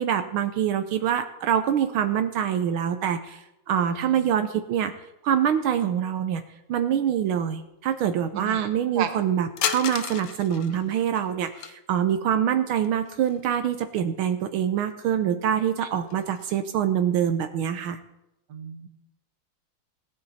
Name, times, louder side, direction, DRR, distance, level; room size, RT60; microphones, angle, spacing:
voice 1, 0.0-4.9 5.2-6.4 6.7-18.0, right 9 dB, 80° right, 8 dB, 1.6 m, -25 dB
voice 2, 3.9-4.2 8.3-8.7 9.0-9.1 18.5-18.9, right 8 dB, 55° right, 7 dB, 1.6 m, -33 dB
sound 1, 9.6-11.7 12.8-13.6 13.9-14.0 15.0-15.1 15.5-16.6, left 9 dB, 70° left, 1.4 m, -34 dB
17.0 x 10.5 x 4.2 m, 0.90 s
omnidirectional pair, 2.3 m